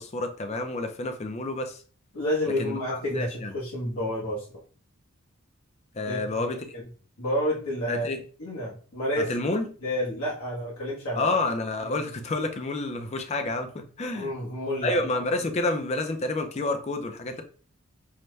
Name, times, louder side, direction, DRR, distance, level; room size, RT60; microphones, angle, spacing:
voice 1, 0.0-1.8 2.6-3.5 5.9-6.7 7.9-8.2 9.2-9.8 11.1-14.3 14.8-17.4, left 2 dB, 30° left, 6 dB, 0.4 m, -29 dB
voice 2, 2.1-4.4 6.1-6.4 7.2-8.1 8.4-9.3 9.8-11.4 11.9-12.0 14.1-15.0, equal, 80° left, -5 dB, 1.1 m, -29 dB
5.5 x 2.1 x 3.1 m, 0.41 s
head